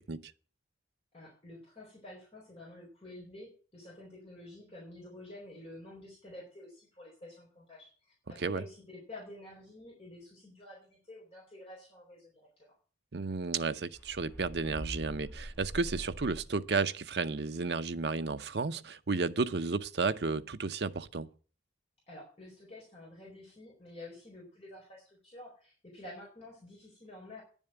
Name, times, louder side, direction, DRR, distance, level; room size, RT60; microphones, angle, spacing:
voice 1, 1.1-12.8 22.1-27.4, left 1 dB, 30° left, 4.2 m, -50 dB
voice 2, 13.1-21.3, right 4 dB, 60° right, 0.7 m, -32 dB
sound 1, 13.9-16.7, right 1 dB, 10° left, 2.5 m, -43 dB
10.5 x 7.2 x 8.9 m
head